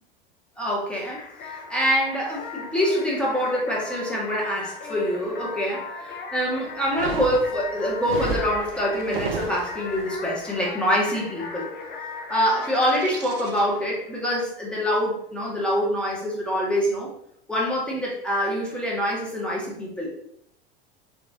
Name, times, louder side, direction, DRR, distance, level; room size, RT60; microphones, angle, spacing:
voice 1, 0.6-11.7 12.3-17.1 17.5-20.1, equal, 5° left, -5 dB, 1.6 m, -25 dB
sound 1, 1.0-14.5, left 5 dB, 35° left, 0.8 m, -38 dB
sound 2, 6.8-10.1, right 5 dB, 75° right, 0.7 m, -32 dB
sound 3, 12.4-13.8, right 2 dB, 45° right, 1.0 m, -38 dB
4.1 x 3.2 x 3.6 m, 0.73 s
figure-of-eight pair, 85°, 29 cm